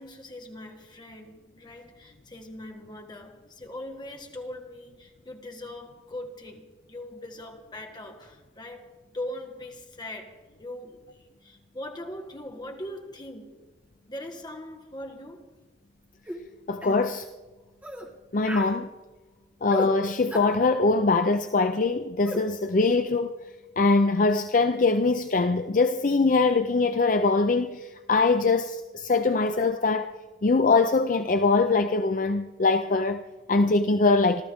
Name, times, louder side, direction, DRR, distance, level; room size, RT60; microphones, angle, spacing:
voice 1, 0.0-13.6 14.1-15.5, left 1 dB, 25° left, 1.6 m, -41 dB
sound 1, 16.3-16.4 16.8-17.0 17.8-18.1 18.4-18.8 19.7-19.9 20.3-20.6 22.2-22.5, equal, 10° right, 1.6 m, -34 dB
voice 2, 16.7-17.3 18.3-18.9 19.6-23.3 23.8-30.1 30.4-34.4, left 3 dB, 45° left, 0.5 m, -23 dB
28.0 x 13.0 x 3.6 m
head